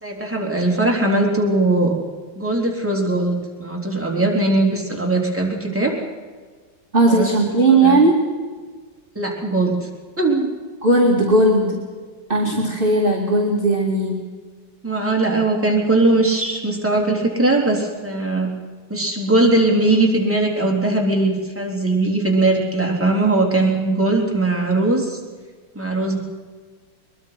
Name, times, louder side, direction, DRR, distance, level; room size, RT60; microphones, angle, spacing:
voice 1, 0.0-2.0 2.4-5.9 7.1-7.3 7.7-8.0 9.2-9.8 10.2-10.5 14.8-18.5 18.9-25.2 25.8-26.2, right 2 dB, 5° right, -1 dB, 3.6 m, -20 dB
voice 2, 6.9-8.2 10.8-11.8 12.3-14.2, right 2 dB, 30° right, -2 dB, 2.4 m, -16 dB
22.0 x 22.0 x 5.9 m, 1.5 s
omnidirectional pair, 2.1 m